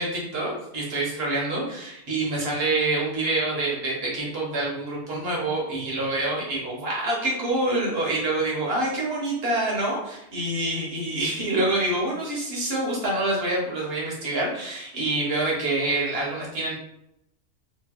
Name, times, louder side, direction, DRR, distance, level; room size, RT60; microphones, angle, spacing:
voice 1, 0.0-16.7, right 2 dB, 60° right, -3 dB, 1.3 m, -26 dB
3.1 x 2.5 x 3.7 m, 0.81 s
omnidirectional pair, 1.2 m